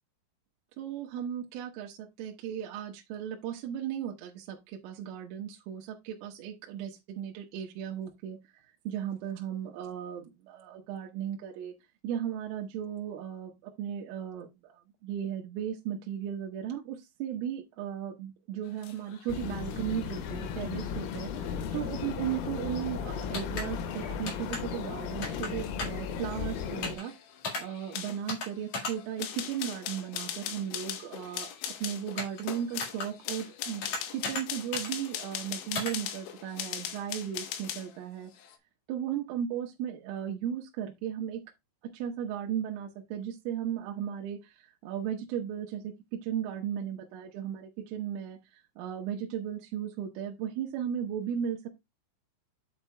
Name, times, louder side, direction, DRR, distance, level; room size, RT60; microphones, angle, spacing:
voice 1, 0.8-8.4 8.9-11.7 12.0-27.1 27.6-33.8 34.1-38.3 38.9-41.4 41.8-51.7, right 9 dB, 80° right, 3.6 m, -36 dB
sound 1, 18.7-38.0 38.3-38.6, left 10 dB, 70° left, 3.3 m, -41 dB
sound 2, 19.3-27.0, left 7 dB, 90° left, 4.0 m, -36 dB
sound 3, 23.3-23.6 24.3-24.6 25.2-25.5 25.8-26.0 26.8-27.0 27.4-27.6 28.3-28.5 28.7-28.9 32.2-32.4 32.8-33.1 33.8-34.4 34.7-34.9 35.7-35.9, left 3 dB, 55° left, 2.2 m, -34 dB
9.1 x 8.2 x 2.3 m
omnidirectional pair, 5.9 m